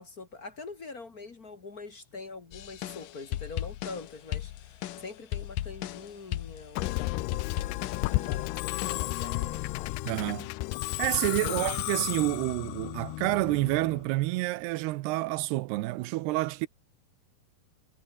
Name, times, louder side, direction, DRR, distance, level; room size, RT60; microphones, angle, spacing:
voice 1, 0.0-7.4 8.1-9.8 11.5-11.6, left 4 dB, 45° left, 1.2 m, -44 dB
sound 1, 2.5-9.3, left 14 dB, 65° left, 2.3 m, -37 dB
Musical instrument, 6.8-14.1, left 19 dB, 80° left, 2.6 m, -33 dB
voice 2, 10.1-10.5 11.0-16.7, right 19 dB, 80° right, 2.7 m, -28 dB
omnidirectional pair, 5.0 m